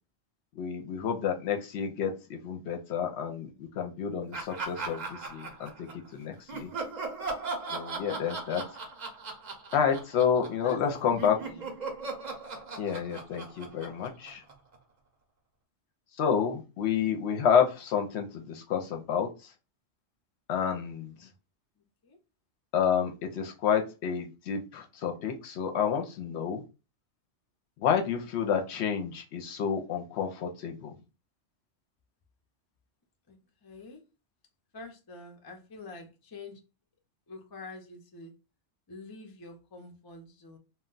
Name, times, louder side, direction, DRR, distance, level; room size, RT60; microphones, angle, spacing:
voice 1, 0.5-6.7 7.7-8.6 9.7-11.4 12.8-14.4 16.1-19.5 20.5-21.3 22.7-26.6 27.8-31.0, left 7 dB, 70° left, 0.8 m, -29 dB
Laughter, 4.3-6.1 6.5-10.9 11.2-14.8, right 3 dB, 45° right, 0.7 m, -38 dB
voice 2, 8.1-8.4 10.3-11.7 21.8-22.2 33.3-34.0 34.7-36.6 37.3-38.3 38.9-40.6, left 3 dB, 30° left, 0.4 m, -47 dB
2.2 x 2.2 x 3.7 m
omnidirectional pair, 1.2 m